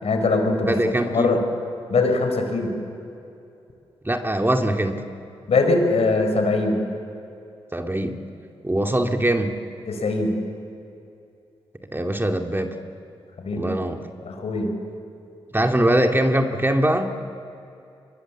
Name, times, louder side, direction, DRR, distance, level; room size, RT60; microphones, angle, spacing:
voice 1, 0.0-0.7 1.0-1.4 1.9-2.7 5.5-6.8 9.9-10.3 13.4-13.7 14.2-14.7, left 3 dB, 70° left, 5 dB, 4.4 m, -21 dB
voice 2, 0.6-1.4 4.0-5.0 7.7-8.2 8.6-9.6 11.9-12.8 13.6-14.0 15.5-17.1, right 1 dB, 20° right, 4 dB, 2.4 m, -22 dB
23.0 x 22.5 x 7.5 m, 2.7 s
supercardioid pair, 40°, 11 cm